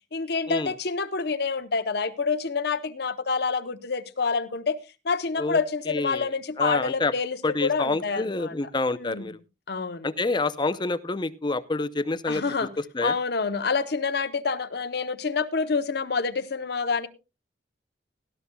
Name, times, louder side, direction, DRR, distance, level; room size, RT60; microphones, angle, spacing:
voice 1, 0.1-4.8 5.0-8.5 8.9-9.2 9.7-10.1 12.3-12.7 13.0-17.1, left 4 dB, 60° left, 11 dB, 0.8 m, -27 dB
voice 2, 5.9-6.3 6.6-7.1 7.4-9.4 10.0-12.7 12.9-13.2, left 3 dB, 25° left, 14 dB, 0.6 m, -27 dB
17.5 x 13.0 x 2.3 m, 0.29 s
head